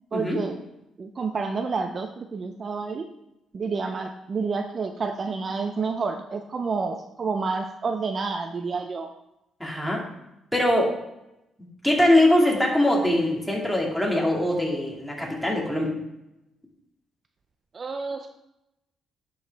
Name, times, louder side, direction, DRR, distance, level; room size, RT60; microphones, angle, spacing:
voice 1, 0.1-0.6 1.0-3.0 3.5-9.1 17.7-18.3, right 4 dB, 40° right, 6 dB, 0.5 m, -29 dB
voice 2, 9.6-10.0 10.5-10.9 11.8-15.9, left 1 dB, ahead, -2 dB, 2.2 m, -22 dB
11.0 x 4.7 x 3.4 m, 0.88 s
cardioid pair, 90°, 0 cm